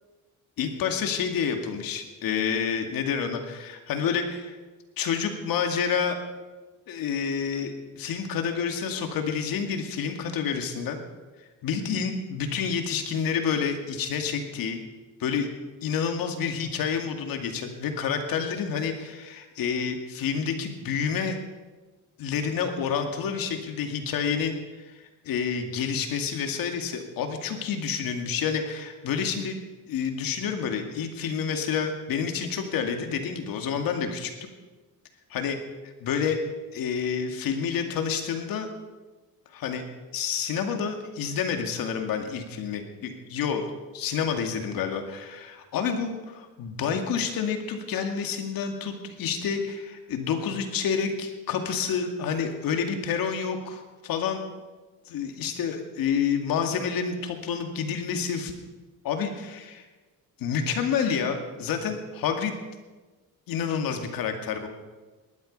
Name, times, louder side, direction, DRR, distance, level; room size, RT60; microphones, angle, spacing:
voice 1, 0.6-4.6 5.0-6.2 6.9-11.0 11.6-14.8 15.2-15.5 15.8-21.4 22.2-29.6 29.9-34.5 35.3-35.6 36.0-36.4 36.7-38.7 39.5-39.8 40.1-43.7 43.9-54.4 55.1-58.5 59.0-59.8 60.4-62.5 63.5-64.7, left 6 dB, 70° left, 5 dB, 2.3 m, -29 dB
19.0 x 12.0 x 5.4 m, 1.3 s
cardioid pair, 130°, 36 cm